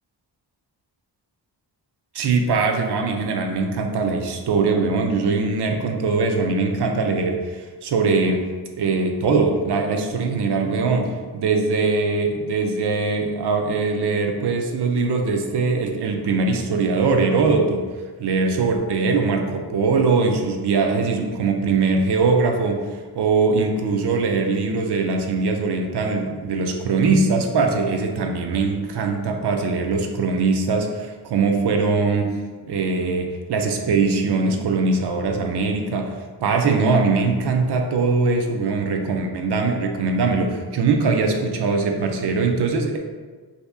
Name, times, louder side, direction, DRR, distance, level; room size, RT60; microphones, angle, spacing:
voice 1, 2.1-8.4 8.8-17.8 18.2-32.3 32.7-43.0, right 4 dB, 70° right, 3 dB, 0.5 m, -21 dB
2.8 x 2.8 x 3.4 m, 1.4 s
wide cardioid pair, 160°, 42 cm